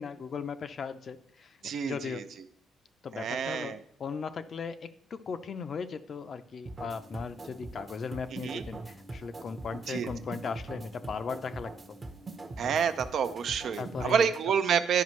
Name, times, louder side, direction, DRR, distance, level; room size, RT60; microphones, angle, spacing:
voice 1, 0.0-2.3 3.0-11.7 13.8-14.3, left 5 dB, 50° left, 10 dB, 0.5 m, -37 dB
voice 2, 1.6-2.2 3.1-3.8 8.4-8.6 9.9-10.1 12.6-15.0, right 7 dB, 65° right, 10 dB, 0.5 m, -28 dB
sound 1, 6.7-14.5, right 2 dB, 30° right, 0.8 m, -43 dB
11.0 x 5.0 x 3.2 m, 0.69 s
cardioid pair, 90°, 0 cm